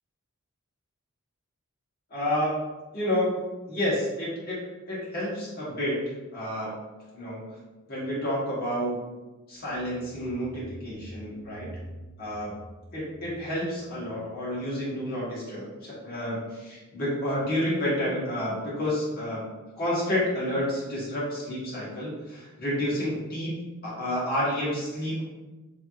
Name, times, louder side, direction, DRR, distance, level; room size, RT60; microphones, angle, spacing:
voice 1, 2.1-2.6 2.9-6.0 6.3-6.7 7.1-7.4 7.9-9.1 9.5-11.7 12.2-12.6 12.9-19.4 19.8-25.3, equal, 40° left, -8 dB, 1.2 m, -30 dB
sound 1, 9.7-14.2, right 1 dB, 10° left, 0.7 m, -46 dB
3.3 x 2.7 x 2.3 m, 1.2 s
head